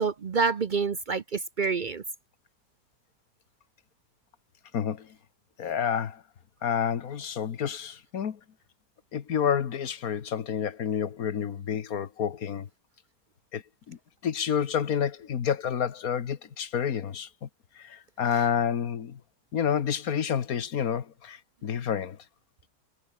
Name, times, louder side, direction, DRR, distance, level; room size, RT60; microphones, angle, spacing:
voice 1, 0.0-2.0, right 5 dB, 55° right, 0.5 m, -27 dB
voice 2, 4.7-5.1 5.6-6.2 6.6-8.4 9.1-12.7 13.5-17.5 17.8-19.2 19.5-22.2, left 8 dB, 60° left, 1.7 m, -29 dB
omnidirectional pair, 1.8 m